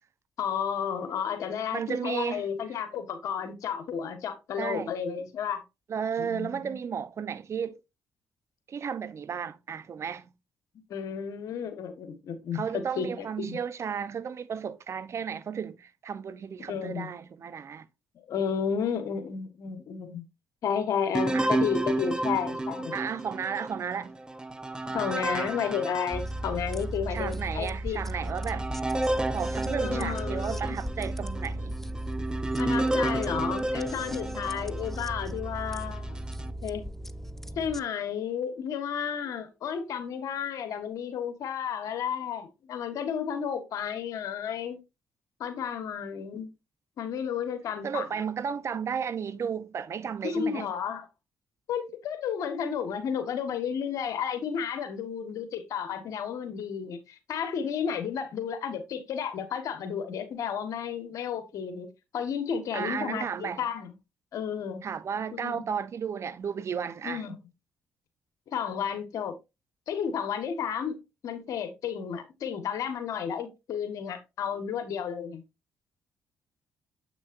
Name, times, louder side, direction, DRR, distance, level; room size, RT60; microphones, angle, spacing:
voice 1, 0.4-5.6 6.2-6.8 10.9-12.6 12.9-13.6 16.7-17.1 18.1-20.2 20.6-22.9 24.9-28.0 29.8-30.8 32.6-36.2 36.6-36.9 37.5-44.8 45.4-46.5 47.0-48.1 50.2-51.1 51.7-61.9 62.1-63.9 64.3-64.8 65.3-65.6 67.0-67.4 68.5-69.3 69.9-71.0 71.2-75.4, left 7 dB, 70° left, 1.5 m, -32 dB
voice 2, 1.7-2.4 4.6-4.9 5.9-7.8 8.7-10.3 12.5-17.9 21.3-21.5 22.9-24.2 27.1-28.7 29.3-31.8 47.8-50.7 62.7-63.6 64.8-67.2, right 7 dB, 55° right, 0.8 m, -33 dB
sound 1, 21.1-26.9 27.4-27.5 28.1-35.3 35.9-36.5, right 1 dB, 15° right, 0.9 m, -31 dB
sound 2, 26.1-37.8, right 1 dB, 5° left, 0.5 m, -36 dB
8.0 x 6.0 x 2.6 m
supercardioid pair, 55°, 6 cm